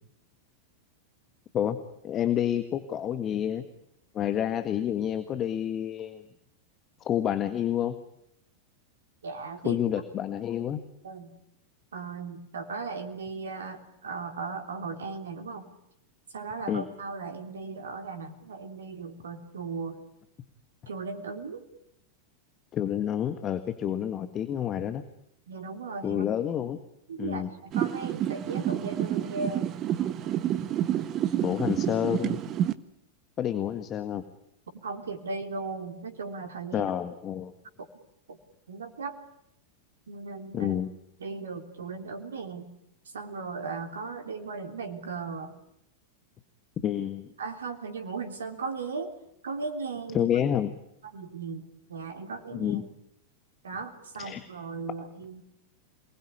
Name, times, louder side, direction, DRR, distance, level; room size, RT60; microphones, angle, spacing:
voice 1, 2.0-3.6 4.1-6.2 7.0-7.9 9.6-10.8 16.7-16.8 22.7-25.0 26.0-26.8 27.2-27.5 30.6-30.7 31.4-32.4 33.4-34.2 36.7-37.5 40.5-40.9 46.8-47.3 50.1-50.7 52.5-52.9 54.2-54.4, left 10 dB, 30° left, 11 dB, 1.6 m, -29 dB
voice 2, 9.2-9.8 11.0-11.3 11.9-15.7 16.3-20.0 20.9-21.7 25.5-26.3 27.1-29.7 34.7-36.9 37.8-37.9 38.3-38.4 38.7-39.2 40.1-40.8 41.2-42.7 43.1-45.6 47.4-49.1 49.4-50.3 51.0-52.8 53.6-55.4, right 4 dB, 65° right, 6 dB, 3.3 m, -37 dB
sound 1, 27.7-32.7, right 11 dB, 30° right, 1.5 m, -29 dB
28.0 x 20.5 x 9.8 m, 0.80 s
figure-of-eight pair, 90°, 0 cm